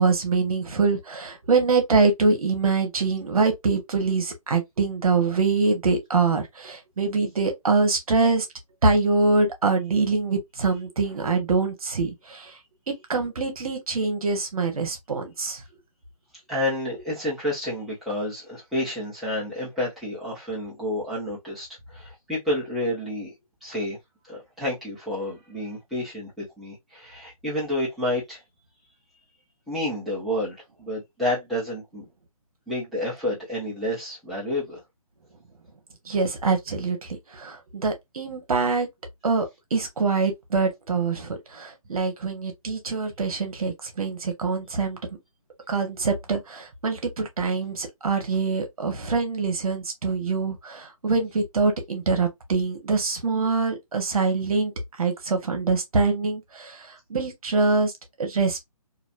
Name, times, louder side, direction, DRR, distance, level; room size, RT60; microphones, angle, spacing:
voice 1, 0.0-8.5 8.8-12.5 12.9-15.6 36.1-38.9 39.2-39.4 39.7-45.0 45.7-54.7 55.0-57.9 58.2-58.7, right 4 dB, 75° right, 1.1 m, -24 dB
voice 2, 16.5-23.3 23.6-24.0 24.2-28.4 29.7-32.0 32.7-34.8, left 1 dB, ahead, 1.3 m, -29 dB
3.0 x 2.6 x 2.5 m
hypercardioid pair, 160°, 19 cm